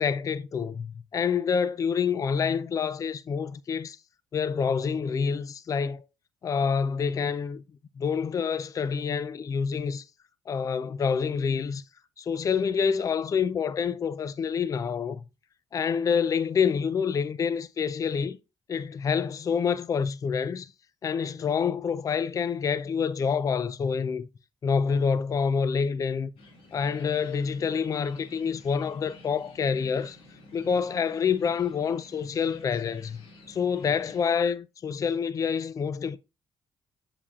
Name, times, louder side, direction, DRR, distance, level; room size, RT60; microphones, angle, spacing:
voice 1, 0.0-4.0 4.3-6.0 6.4-7.6 8.0-10.0 10.5-11.8 12.2-15.2 15.7-18.4 18.7-20.7 21.0-24.3 24.6-26.3 26.7-30.2 30.5-33.2 33.5-36.2, left 6 dB, 40° left, 0.4 m, -27 dB
sound 1, 26.4-34.2, left 2 dB, 85° left, 2.0 m, -52 dB
7.3 x 7.0 x 2.4 m
cardioid pair, 90°, 9 cm